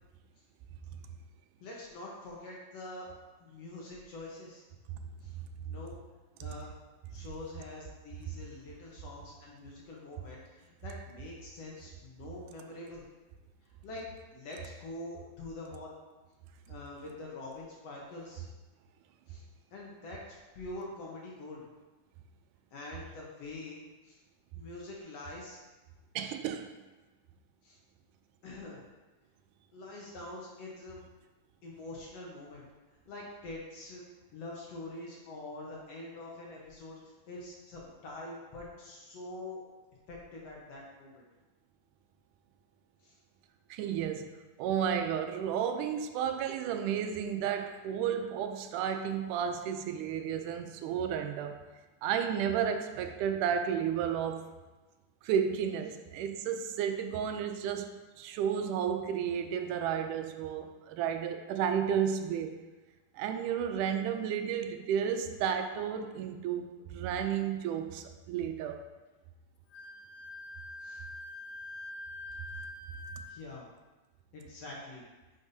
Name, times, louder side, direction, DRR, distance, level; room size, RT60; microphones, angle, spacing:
voice 1, 1.6-3.1 3.4-4.6 5.2-5.3 5.7-6.0 6.4-6.7 7.1-13.0 13.8-14.1 14.3-16.0 16.7-18.5 19.3-19.4 19.7-21.7 22.7-24.2 24.5-25.6 27.6-27.8 28.4-28.8 29.7-31.0 31.6-32.6 33.1-34.0 34.3-39.6 40.1-41.2 43.0-43.2 70.8-71.0 73.3-73.7 74.3-75.0, left 2 dB, 65° left, -3 dB, 1.9 m, -45 dB
voice 2, 26.2-26.7 43.7-44.3 44.6-51.6 52.0-54.5 55.2-62.6 63.2-68.9, right 8 dB, 80° right, 7 dB, 2.0 m, -32 dB
Wind instrument woodwind instrument, 69.7-73.4, left 2 dB, 90° left, 2.1 m, -44 dB
9.4 x 5.5 x 2.7 m, 1.2 s
omnidirectional pair, 3.7 m